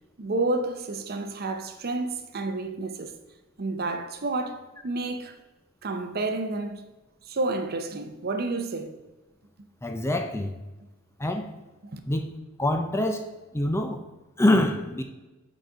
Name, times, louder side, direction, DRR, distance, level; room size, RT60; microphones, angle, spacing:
voice 1, 0.2-3.2 3.6-5.4 5.8-6.8 7.3-9.0 11.9-12.0, right 2 dB, 45° right, 0.7 m, -30 dB
voice 2, 9.8-10.6 11.2-11.5 12.1-12.3 12.6-14.0 14.4-15.0, left 1 dB, 10° left, 0.4 m, -25 dB
8.1 x 4.1 x 4.8 m
head